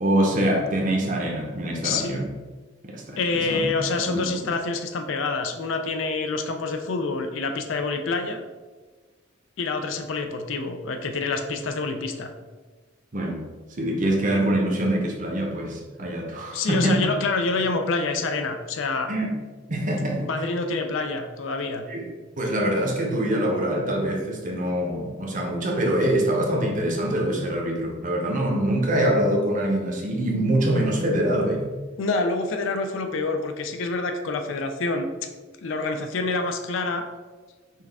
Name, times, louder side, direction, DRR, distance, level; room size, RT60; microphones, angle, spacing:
voice 1, 0.0-2.2 2.8-3.6 4.1-4.3 13.1-13.4 13.8-17.1 19.1-19.3 19.7-20.2 21.9-22.0 22.4-31.6, right 1 dB, 40° right, 1 dB, 0.7 m, -24 dB
voice 2, 1.8-2.1 3.2-8.4 9.6-12.3 16.5-19.1 20.2-21.8 32.0-35.1 35.6-37.1, left 3 dB, 70° left, 6 dB, 0.4 m, -27 dB
5.7 x 2.3 x 3.4 m, 1.3 s
head